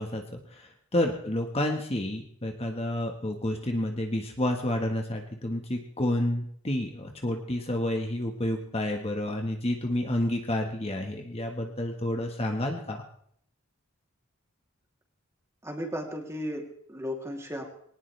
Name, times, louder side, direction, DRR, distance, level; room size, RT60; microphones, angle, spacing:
voice 1, 0.0-13.0, left 1 dB, 30° left, 3 dB, 1.5 m, -30 dB
voice 2, 15.6-17.6, equal, 15° right, 1 dB, 3.0 m, -35 dB
22.0 x 18.5 x 3.4 m, 0.66 s
head